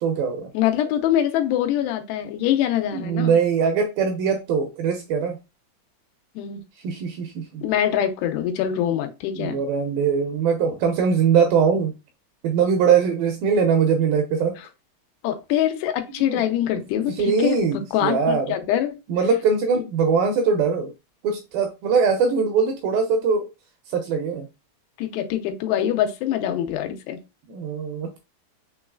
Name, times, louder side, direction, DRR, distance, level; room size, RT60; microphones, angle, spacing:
voice 1, 0.0-0.5 2.9-5.4 6.8-7.6 9.4-11.9 12.4-14.6 16.3-16.4 17.1-18.5 19.1-20.9 21.2-23.5 23.9-24.5 27.5-28.1, right 6 dB, 80° right, 2.2 m, -21 dB
voice 2, 0.5-3.4 6.4-6.6 7.6-9.6 14.6-14.7 15.2-19.0 25.0-27.2, left 11 dB, 85° left, 2.7 m, -24 dB
6.1 x 3.1 x 2.3 m
omnidirectional pair, 4.7 m